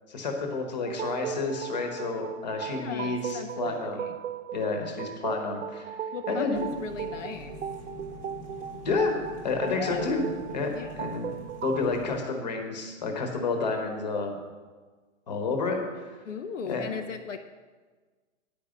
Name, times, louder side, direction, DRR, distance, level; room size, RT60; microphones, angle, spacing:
voice 1, 0.1-4.1 4.5-5.9 6.3-6.8 8.8-9.2 9.4-11.3 11.6-14.4 15.3-15.8 16.7-16.8, left 4 dB, 35° left, 3 dB, 1.2 m, -30 dB
sound 1, 0.8-11.8, right 8 dB, 70° right, 0.6 m, -37 dB
voice 2, 2.8-4.2 6.1-7.6 9.7-10.1 10.7-11.0 16.2-17.4, left 6 dB, 75° left, 6 dB, 0.7 m, -38 dB
sound 2, 6.5-12.2, left 1 dB, 15° left, 1.1 m, -45 dB
9.6 x 5.2 x 7.2 m, 1.4 s
hypercardioid pair, 180°, 37 cm